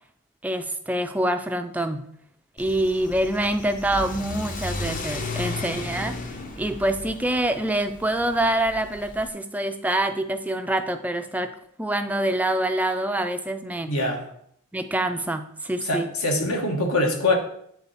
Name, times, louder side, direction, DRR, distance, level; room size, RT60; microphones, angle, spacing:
voice 1, 0.4-2.0 2.6-6.2 6.6-11.5 11.8-13.9 14.7-16.1, right 1 dB, 5° right, 7 dB, 0.3 m, -25 dB
Car / Accelerating revving vroom, 2.6-9.3, left 2 dB, 35° left, 0.7 m, -34 dB
voice 2, 13.9-14.3 15.8-17.3, left 2 dB, 75° left, 2 dB, 1.3 m, -23 dB
8.3 x 3.8 x 4.1 m, 0.68 s
head